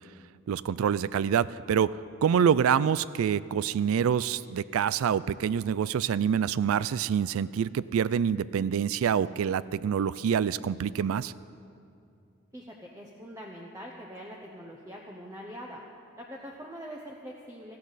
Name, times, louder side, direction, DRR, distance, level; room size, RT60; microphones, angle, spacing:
voice 1, 0.5-11.3, right 8 dB, 90° right, 18 dB, 0.3 m, -26 dB
voice 2, 12.5-15.8 16.2-17.8, equal, 15° right, -1 dB, 0.9 m, -43 dB
18.0 x 15.0 x 4.1 m, 2.5 s
head